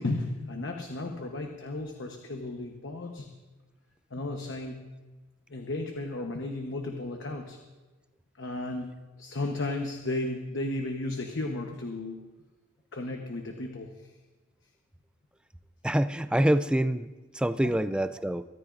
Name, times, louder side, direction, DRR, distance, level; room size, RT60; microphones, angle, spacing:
voice 1, 0.0-3.3 4.1-4.8 5.5-7.6 8.4-12.2 12.9-14.1, left 2 dB, 60° left, 3 dB, 1.0 m, -34 dB
voice 2, 15.8-18.5, right 1 dB, 5° right, 12 dB, 0.4 m, -26 dB
23.5 x 13.0 x 2.5 m, 1.2 s
head